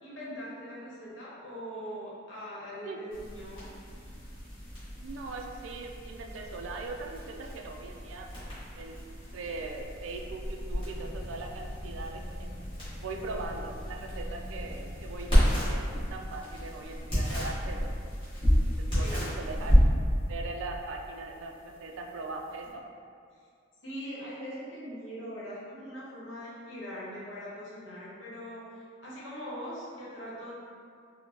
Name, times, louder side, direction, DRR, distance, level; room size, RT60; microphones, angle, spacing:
voice 1, 0.0-3.7 18.9-19.2 23.8-30.5, equal, 70° left, -8 dB, 1.0 m, -41 dB
sound 1, 3.1-22.7, equal, 25° left, 1.4 m, -31 dB
voice 2, 5.0-8.3 8.7-9.1 9.3-12.5 13.0-17.9 18.9-19.7 20.3-22.8, right 3 dB, 75° right, 2 dB, 0.4 m, -40 dB
4.4 x 2.1 x 2.9 m, 2.3 s
head